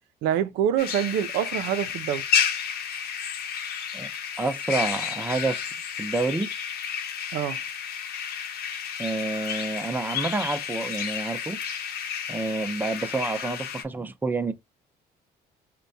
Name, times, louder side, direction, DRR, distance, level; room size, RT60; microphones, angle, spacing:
voice 1, 0.2-2.2 7.3-7.6, right 10 dB, 90° right, 0.5 m, -26 dB
sound 1, 0.8-13.8, left 8 dB, 70° left, 0.8 m, -31 dB
voice 2, 4.4-5.6 6.0-6.5 9.0-11.6 12.3-14.5, right 3 dB, 10° right, 0.5 m, -28 dB
4.4 x 2.2 x 2.6 m
cardioid pair, 110°, 17 cm